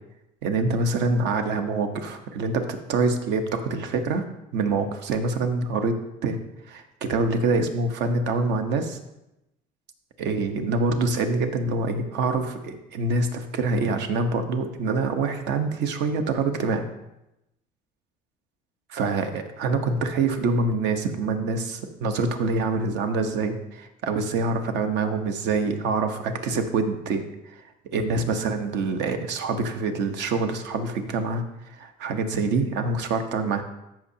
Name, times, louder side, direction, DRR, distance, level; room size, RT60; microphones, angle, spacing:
voice 1, 0.4-4.3 4.5-6.0 6.2-6.4 6.7-9.0 10.2-16.9 18.9-27.2 27.5-27.6 27.9-33.6, right 3 dB, 75° right, 6 dB, 1.1 m, -25 dB
14.0 x 6.0 x 2.8 m, 0.88 s
cardioid pair, 140°, 18 cm